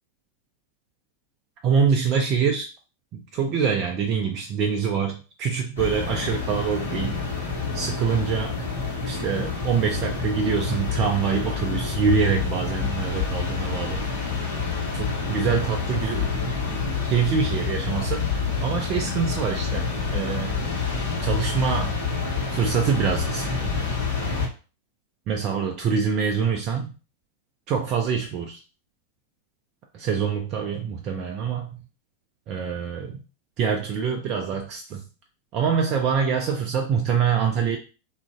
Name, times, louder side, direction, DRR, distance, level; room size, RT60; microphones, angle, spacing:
voice 1, 1.6-2.7 3.1-7.2 7.7-8.7 9.1-14.0 14.9-18.2 18.6-20.6 21.2-22.0 22.5-23.7 25.3-26.9 27.7-28.6 29.9-31.8 32.5-33.2 33.6-35.0 35.5-37.8, right 6 dB, 35° right, 3 dB, 0.4 m, -25 dB
sound 1, 5.8-24.5, left 4 dB, 65° left, 1.0 m, -28 dB
2.9 x 2.4 x 2.3 m, 0.34 s
figure-of-eight pair, 90°, 0 cm